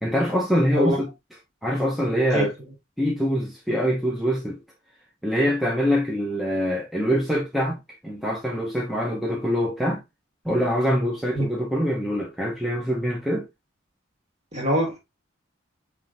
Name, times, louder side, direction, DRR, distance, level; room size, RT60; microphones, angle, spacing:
voice 1, 0.0-1.1 1.6-2.5 3.0-4.6 5.2-10.0 10.4-13.5, equal, ahead, 0.7 m, -24 dB
voice 2, 14.5-15.0, equal, 35° right, 1.7 m, -23 dB
5.6 x 3.2 x 2.5 m
head